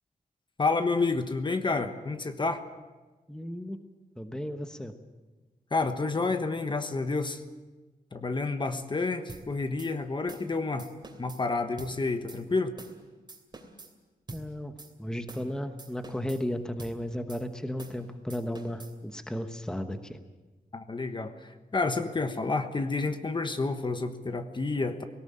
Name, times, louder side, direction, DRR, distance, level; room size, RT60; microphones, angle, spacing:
voice 1, 0.6-2.6 5.7-7.4 8.1-10.9 11.2-12.7 20.7-25.0, left 3 dB, 30° left, 8 dB, 1.2 m, -29 dB
voice 2, 3.3-3.8 4.2-4.9 14.3-14.7 15.0-20.2, left 1 dB, 5° left, 8 dB, 1.1 m, -34 dB
sound 1, 9.3-9.5 9.8-9.9 10.3-10.5 10.8-11.4 11.8-11.9 12.3-12.4 12.8-13.0 13.3-13.9 14.3-14.5 14.8-14.9 15.3-15.5 15.8-16.4 16.8-17.0 17.3-17.4 17.8-18.0 18.3-18.9, right 3 dB, 30° right, 2.9 m, -45 dB
18.5 x 18.0 x 8.8 m, 1.2 s
wide cardioid pair, 135°, 15 cm